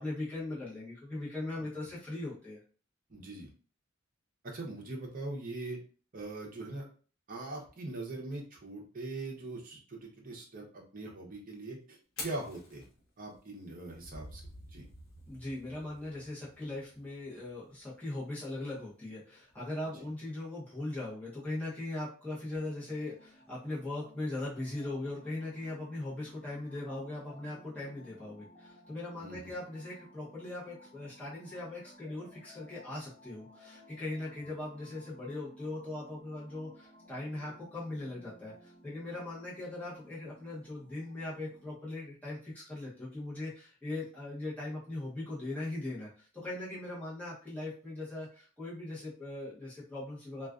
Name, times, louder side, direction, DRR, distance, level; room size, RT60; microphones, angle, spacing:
voice 1, 0.0-2.6 15.3-50.5, left 2 dB, 5° left, -8 dB, 0.7 m, -40 dB
voice 2, 3.1-3.5 4.4-5.8 6.1-6.8 7.3-12.8 13.2-14.4 14.7-14.9 19.9-20.1 29.2-29.5, right 2 dB, 40° right, -1 dB, 0.7 m, -42 dB
Fire, 12.0-20.0, left 3 dB, 70° left, 0.8 m, -52 dB
sound 1, 13.9-18.0, right 1 dB, 55° right, 1.0 m, -53 dB
sound 2, 22.5-41.7, equal, 25° left, 1.1 m, -58 dB
2.3 x 2.3 x 2.3 m, 0.40 s
head